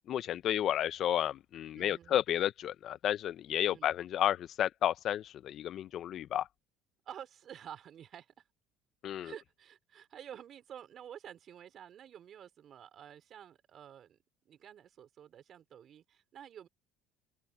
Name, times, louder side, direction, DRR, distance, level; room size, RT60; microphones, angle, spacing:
voice 1, 0.1-6.5 9.0-9.3, left 11 dB, 50° left, 0.7 m, -32 dB
voice 2, 1.7-2.2 3.7-4.0 7.1-8.3 9.2-14.2 14.5-16.7, right 9 dB, 45° right, 3.6 m, -50 dB
open air
supercardioid pair, 110°, 0 cm